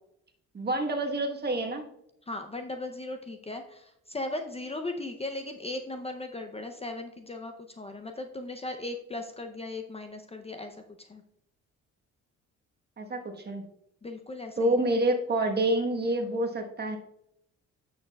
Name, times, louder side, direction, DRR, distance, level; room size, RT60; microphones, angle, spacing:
voice 1, 0.5-1.9 13.0-13.7 14.6-17.0, right 1 dB, 35° right, 4 dB, 1.3 m, -27 dB
voice 2, 2.3-11.2 14.0-14.9, left 2 dB, 20° left, 5 dB, 0.6 m, -37 dB
10.5 x 6.5 x 2.3 m, 0.77 s
cardioid pair, 90°, 30 cm